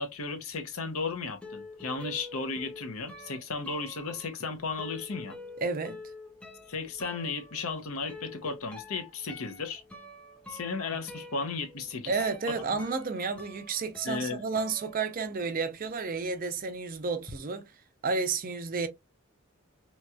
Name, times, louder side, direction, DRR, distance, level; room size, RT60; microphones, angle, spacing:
voice 1, 0.0-5.4 6.7-9.8 10.5-12.2 14.0-14.4, left 4 dB, 75° left, 0.7 m, -35 dB
sound 1, 0.9-15.7 15.9-17.4, left 2 dB, 5° left, 0.6 m, -48 dB
voice 2, 5.6-6.0 12.1-17.7 18.0-18.9, right 4 dB, 40° right, 0.5 m, -31 dB
3.0 x 2.8 x 2.3 m
head